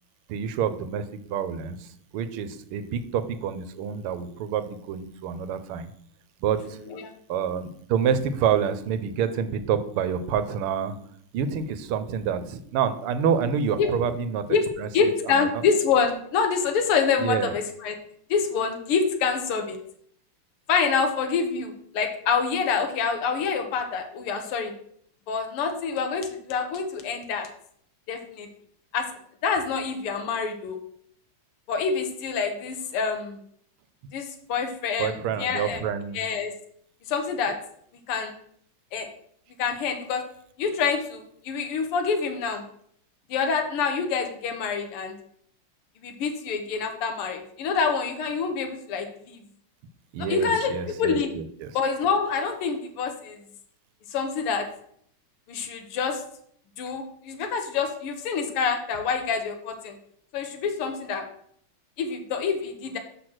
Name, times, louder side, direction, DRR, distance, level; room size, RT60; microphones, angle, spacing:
voice 1, 0.3-5.9 6.4-6.8 7.3-10.9 11.3-14.9 15.2-15.5 17.2-17.5 35.0-36.3 50.1-51.7, right 7 dB, 90° right, 11 dB, 1.6 m, -28 dB
voice 2, 14.9-18.0 18.3-19.8 20.7-24.7 25.3-27.5 28.1-28.5 28.9-29.1 29.4-30.8 31.7-33.4 34.1-35.8 36.1-36.5 37.1-37.6 38.1-38.3 38.9-39.1 39.6-40.2 40.6-42.6 43.3-45.1 46.0-49.4 50.3-51.4 51.7-53.4 54.1-54.7 55.5-56.2 56.8-59.9 60.3-61.2 62.0-63.0, left 5 dB, 85° left, 5 dB, 1.9 m, -26 dB
6.1 x 6.0 x 6.3 m, 0.65 s
omnidirectional pair, 2.4 m